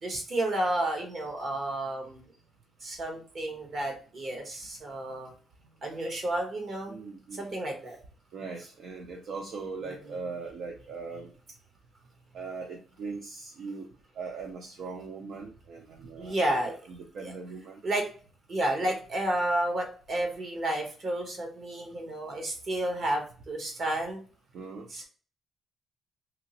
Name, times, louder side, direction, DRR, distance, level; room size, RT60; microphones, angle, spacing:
voice 1, 0.0-2.3 2.8-5.3 5.8-6.9 7.3-8.0 9.8-10.1 16.2-16.7 17.2-17.3 17.8-18.0 18.5-24.2 24.9-25.0, right 1 dB, 50° right, 2 dB, 1.2 m, -31 dB
voice 2, 6.9-7.5 8.3-11.3 12.3-13.9 14.1-17.8 18.8-18.9 24.5-24.9, right 4 dB, 70° right, 1 dB, 0.5 m, -40 dB
2.9 x 2.8 x 2.8 m, 0.40 s
cardioid pair, 90°, 0 cm